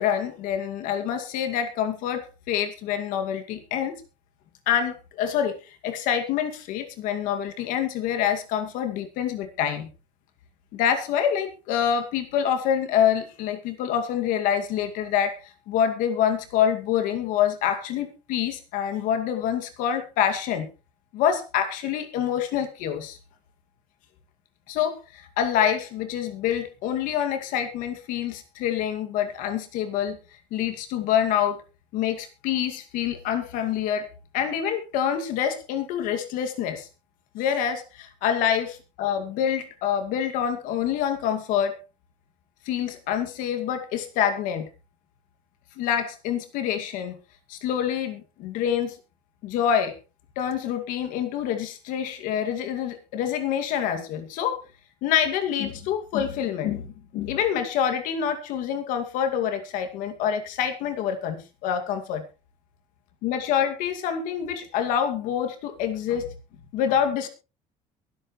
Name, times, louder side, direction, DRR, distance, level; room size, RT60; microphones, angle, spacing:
voice 1, 0.0-4.0 4.7-5.6 5.8-9.9 10.7-15.4 15.7-20.7 21.1-23.2 24.7-30.2 30.5-31.6 31.9-34.1 34.3-36.9 37.3-41.8 42.7-44.7 45.8-47.2 47.5-48.9 49.4-49.9 50.4-54.6 55.0-62.2 63.2-66.3 66.7-67.3, left 9 dB, 85° left, 7 dB, 2.3 m, -26 dB
23.0 x 8.1 x 3.2 m, 0.30 s
cardioid pair, 120°, 13 cm